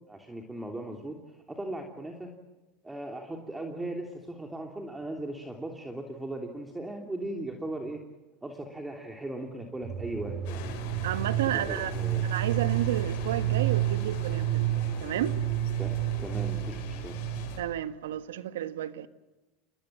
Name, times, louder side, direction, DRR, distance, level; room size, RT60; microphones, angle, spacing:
voice 1, 0.1-2.3 2.8-8.0 8.4-10.7 11.4-12.2 15.8-17.2, right 1 dB, 10° right, 3.1 m, -38 dB
sound 1, 9.8-17.7, right 13 dB, 55° right, 5.0 m, -30 dB
sound 2, 10.4-17.6, left 7 dB, 70° left, 6.3 m, -42 dB
voice 2, 11.0-11.9 12.2-15.4 17.6-19.1, right 11 dB, 85° right, 1.4 m, -32 dB
29.0 x 19.5 x 7.5 m
supercardioid pair, 105°, 0 cm